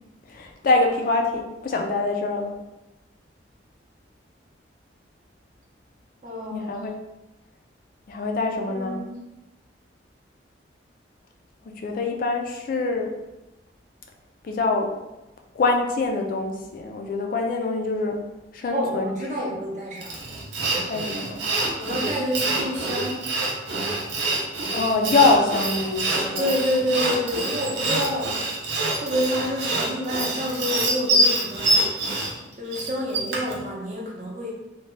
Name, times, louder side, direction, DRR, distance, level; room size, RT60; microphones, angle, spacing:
voice 1, 0.3-2.5 6.5-6.9 8.1-9.0 11.8-13.1 14.4-14.9 15.6-18.2 18.5-19.1 20.9-21.4 24.7-26.5, left 3 dB, 50° left, 3 dB, 0.3 m, -24 dB
voice 2, 6.2-6.7 8.7-9.3 18.7-20.3 21.8-23.3 26.4-28.4 29.0-32.0 32.5-34.5, equal, 40° right, -2 dB, 0.6 m, -28 dB
Sawing, 20.0-33.6, right 2 dB, 80° right, 0.7 m, -25 dB
2.7 x 2.2 x 3.1 m, 0.99 s
head